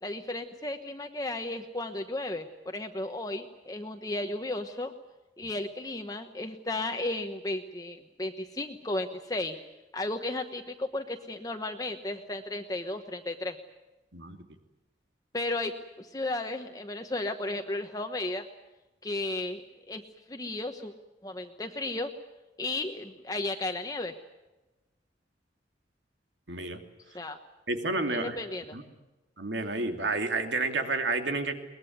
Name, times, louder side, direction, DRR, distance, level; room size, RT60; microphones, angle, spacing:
voice 1, 0.0-4.9 5.4-9.6 9.9-13.6 15.3-18.5 19.0-19.6 19.9-20.0 20.3-20.9 21.2-22.1 22.6-24.1 27.1-27.4 28.1-28.8, left 2 dB, 20° left, 5 dB, 1.1 m, -34 dB
voice 2, 26.5-26.8 27.7-28.4 28.7-28.8 29.4-31.5, right 3 dB, 80° right, 6 dB, 2.7 m, -30 dB
22.5 x 20.5 x 9.5 m, 1.1 s
head